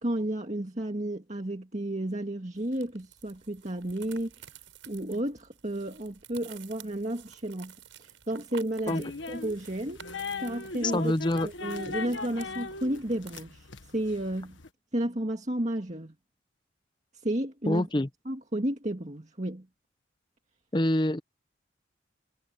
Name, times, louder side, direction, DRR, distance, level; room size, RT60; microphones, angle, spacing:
voice 1, 0.0-4.6 4.9-7.7 8.0-10.0 10.4-11.1 11.4-14.6 14.9-16.1 17.2-17.9 18.3-19.7, right 1 dB, 40° right, 2.0 m, -32 dB
sound 1, 2.5-13.4, right 8 dB, 85° right, 7.2 m, -52 dB
sound 2, 8.9-14.7, left 4 dB, 80° left, 1.6 m, -39 dB
voice 2, 10.9-11.5 17.7-18.1 20.7-21.2, left 1 dB, 25° left, 0.8 m, -26 dB
head